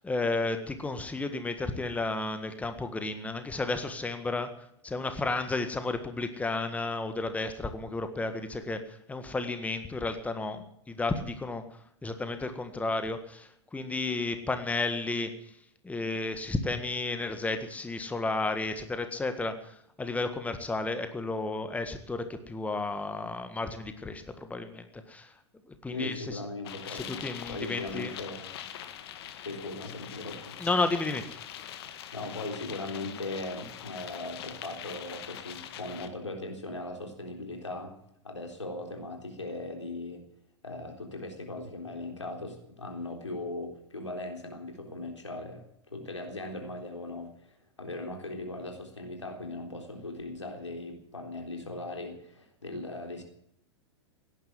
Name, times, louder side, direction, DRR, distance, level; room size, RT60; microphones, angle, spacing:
voice 1, 0.0-4.5 4.8-11.6 12.0-15.3 15.8-25.3 25.8-26.4 26.9-28.1 30.6-31.4, left 3 dB, 10° left, 8 dB, 1.6 m, -32 dB
voice 2, 25.9-28.5 29.5-30.6 32.1-37.9 38.2-40.2 40.6-45.6 45.9-53.2, left 2 dB, 85° left, 4 dB, 3.8 m, -39 dB
sound 1, 26.6-36.1, left 10 dB, 60° left, 1.8 m, -43 dB
17.0 x 10.5 x 7.6 m, 0.72 s
figure-of-eight pair, 95°, 15 cm